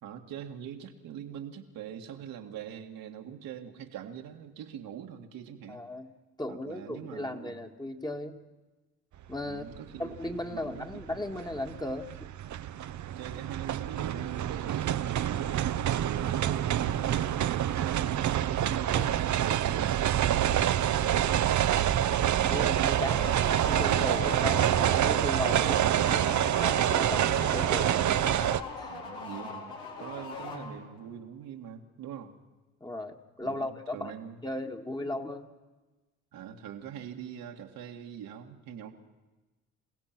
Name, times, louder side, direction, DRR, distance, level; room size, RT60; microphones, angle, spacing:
voice 1, 0.0-5.8 6.5-7.7 9.4-11.2 13.2-21.3 23.1-23.4 28.8-32.3 33.4-34.4 36.3-38.9, right 9 dB, 70° right, 3 dB, 2.0 m, -43 dB
voice 2, 5.7-6.1 6.4-8.4 9.3-9.6 10.0-12.1 16.4-16.6 18.9-19.2 22.5-28.0 28.8-29.0 30.0-30.1 32.8-34.1 34.4-35.5, left 1 dB, 10° left, 4 dB, 1.9 m, -36 dB
sound 1, 9.6-9.8 10.1-28.6, right 11 dB, 55° right, 0.9 m, -27 dB
sound 2, 22.7-31.1, left 4 dB, 85° left, 4.0 m, -41 dB
27.5 x 16.0 x 6.0 m, 1.2 s
supercardioid pair, 65°, 35 cm